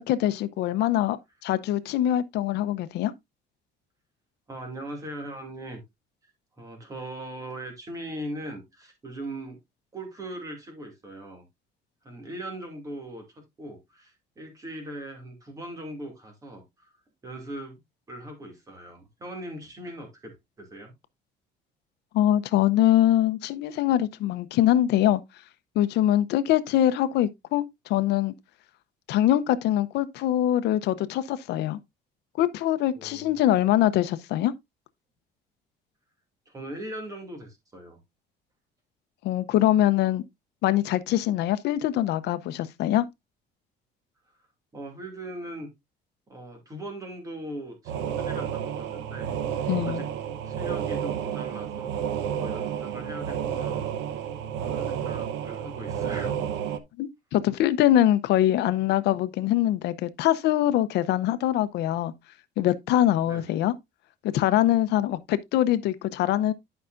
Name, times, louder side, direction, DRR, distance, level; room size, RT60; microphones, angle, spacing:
voice 1, 0.1-3.1 22.1-25.2 25.8-28.3 29.1-31.8 32.4-34.5 39.2-40.2 40.6-43.1 49.7-50.0 57.0-62.1 62.6-63.7 64.2-66.5, left 12 dB, 65° left, 0.7 m, -23 dB
voice 2, 4.5-5.8 6.2-6.3 6.6-9.6 9.9-11.4 12.0-13.2 13.6-16.9 17.2-17.8 18.1-20.9 33.0-33.5 36.5-38.0 44.4-44.5 44.7-45.7 46.3-50.1 50.4-52.0 52.3-54.0 54.6-56.4 63.2-63.6, right 1 dB, 20° right, 2.3 m, -40 dB
sound 1, 47.9-56.8, right 9 dB, 80° right, 0.9 m, -31 dB
11.0 x 5.6 x 2.5 m
cardioid pair, 175°, 19 cm